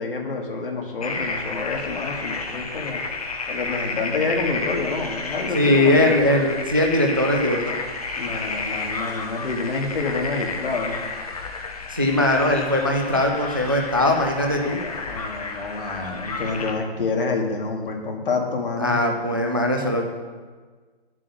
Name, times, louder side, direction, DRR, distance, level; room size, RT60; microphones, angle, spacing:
voice 1, 0.0-3.0 3.5-6.5 8.2-11.0 14.7-19.0, left 3 dB, 60° left, 1 dB, 1.9 m, -28 dB
sound 1, 1.0-16.7, left 3 dB, 35° left, 0.9 m, -31 dB
voice 2, 5.5-7.8 11.9-14.8 18.8-20.0, left 1 dB, 20° right, 2 dB, 0.4 m, -20 dB
9.8 x 7.5 x 6.6 m, 1.4 s
hypercardioid pair, 180°, 31 cm